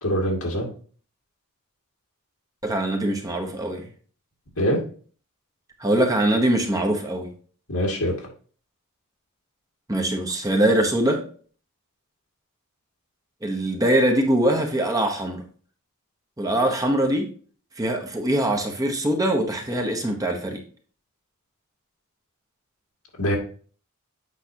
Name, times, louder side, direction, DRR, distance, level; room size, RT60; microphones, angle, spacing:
voice 1, 0.0-0.7 4.6-4.8 7.7-8.1 23.2-23.4, equal, 80° left, 2.3 m, -23 dB
voice 2, 2.6-3.9 5.8-7.3 9.9-11.3 13.4-15.4 16.4-17.3 17.8-20.6, right 1 dB, 15° right, 0.9 m, -22 dB
8.4 x 5.7 x 2.8 m
head